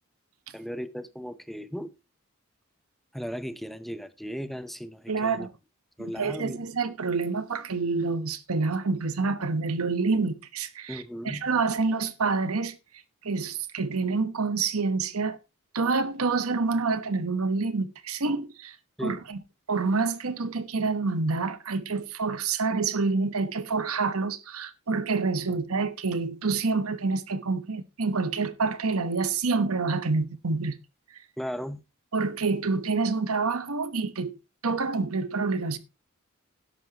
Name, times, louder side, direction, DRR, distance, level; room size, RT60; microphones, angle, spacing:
voice 1, 0.5-1.9 3.1-5.5 6.0-6.6 10.9-11.5 19.0-19.2 31.4-31.8, equal, ahead, 0.7 m, -36 dB
voice 2, 5.1-5.5 6.0-12.8 13.2-15.4 15.7-18.8 19.0-19.4 19.7-30.8 32.1-34.4 34.6-35.8, right 4 dB, 85° right, 1.1 m, -27 dB
12.5 x 11.0 x 2.9 m
head